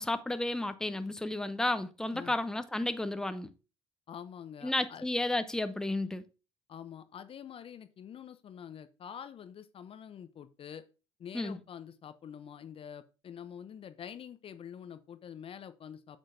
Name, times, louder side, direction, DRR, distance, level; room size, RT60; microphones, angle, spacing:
voice 1, 0.0-3.5 4.6-6.2 11.3-11.6, left 2 dB, 5° left, 0.7 m, -32 dB
voice 2, 4.1-5.1 6.7-10.9 11.2-16.2, left 8 dB, 40° left, 0.6 m, -46 dB
8.5 x 6.2 x 2.6 m
hypercardioid pair, 65°, 15 cm